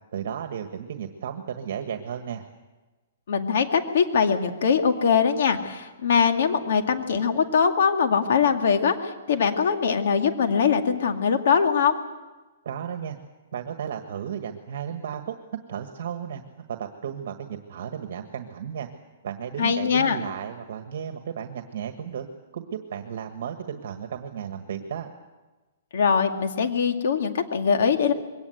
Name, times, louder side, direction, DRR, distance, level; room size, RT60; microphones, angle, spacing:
voice 1, 0.1-2.4 12.6-13.2 13.5-16.4 16.7-18.9 19.2-22.3 22.5-25.1, right 8 dB, 60° right, 6 dB, 1.6 m, -34 dB
voice 2, 3.3-12.0 19.6-20.2 25.9-28.1, left 6 dB, 65° left, 5 dB, 2.3 m, -22 dB
22.5 x 18.5 x 8.1 m, 1.2 s
hypercardioid pair, 160°, 0 cm